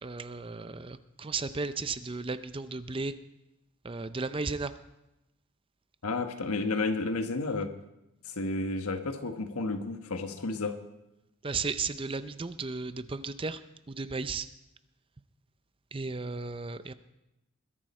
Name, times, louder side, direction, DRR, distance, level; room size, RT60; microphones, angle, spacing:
voice 1, 0.0-3.1 3.8-4.7 11.4-13.6 13.9-14.5 15.9-16.9, right 4 dB, 25° right, 12 dB, 0.5 m, -34 dB
voice 2, 6.0-7.7 8.2-10.8, left 3 dB, 85° left, 7 dB, 1.3 m, -31 dB
21.5 x 11.0 x 4.3 m, 0.93 s
head